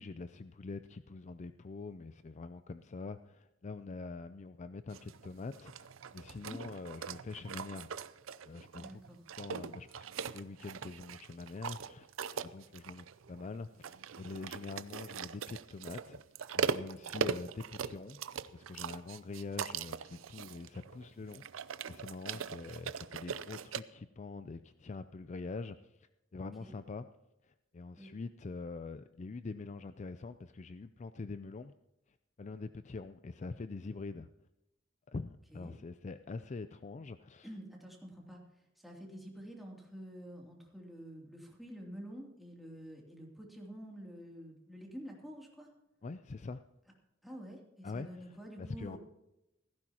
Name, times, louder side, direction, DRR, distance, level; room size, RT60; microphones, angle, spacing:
voice 1, 0.0-5.9 6.1-7.9 8.4-9.0 9.4-12.1 12.4-16.2 16.5-18.2 18.5-21.4 21.9-27.1 27.4-31.7 32.4-34.3 35.1-37.5 46.0-46.6 47.8-48.1 48.6-49.0, left 3 dB, 35° left, 11 dB, 0.4 m, -44 dB
sound 1, 4.9-23.8, right 6 dB, 80° right, 0.5 m, -41 dB
voice 2, 8.8-9.2 17.1-17.3 22.3-22.6 26.6-26.7 28.0-28.1 35.5-35.7 37.4-45.7 47.2-49.0, equal, ahead, -2 dB, 2.8 m, -49 dB
17.0 x 15.0 x 2.9 m, 0.91 s
head